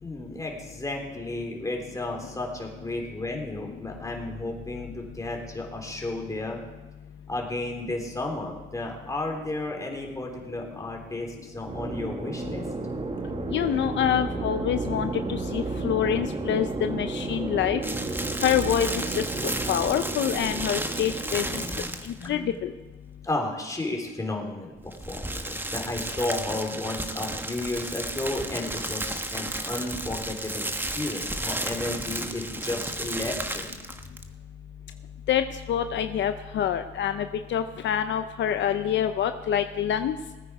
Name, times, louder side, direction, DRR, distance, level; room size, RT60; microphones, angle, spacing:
voice 1, 0.0-6.6 7.3-12.7 21.6-22.6 23.2-33.6, left 2 dB, 15° left, 1 dB, 3.4 m, -33 dB
sound 1, 11.7-21.7, right 3 dB, 30° right, 1.6 m, -32 dB
voice 2, 13.5-17.8 18.4-19.2 19.7-21.6 22.0-22.7 35.3-40.2, left 9 dB, 65° left, 8 dB, 0.7 m, -26 dB
sound 2, 17.8-22.3 24.8-34.3, right 1 dB, 10° right, 1.2 m, -33 dB
19.5 x 9.3 x 4.8 m, 1.2 s
cardioid pair, 90°, 20 cm